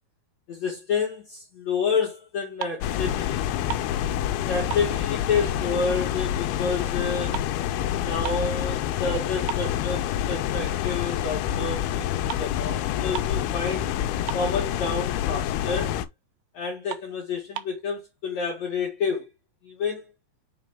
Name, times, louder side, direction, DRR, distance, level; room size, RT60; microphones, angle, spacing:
voice 1, 0.5-3.4 4.3-7.4 8.0-12.1 12.4-13.9 14.3-16.0 16.5-19.3 19.6-20.1, left 5 dB, 55° left, 2.5 m, -29 dB
sound 1, 2.3-3.0 3.3-4.4 4.7-6.2 6.5-8.6 9.0-9.1 9.5-10.6 11.0-11.2 12.0-12.1 12.3-12.5 12.8-12.9 13.1-13.5 13.8-13.9 14.1-14.9 15.3-15.5 15.9-16.0 16.4-16.5 16.9-17.8, right 12 dB, 90° right, 1.7 m, -37 dB
sound 2, 2.8-16.1, left 11 dB, 85° left, 2.6 m, -27 dB
7.4 x 3.9 x 3.6 m
omnidirectional pair, 4.5 m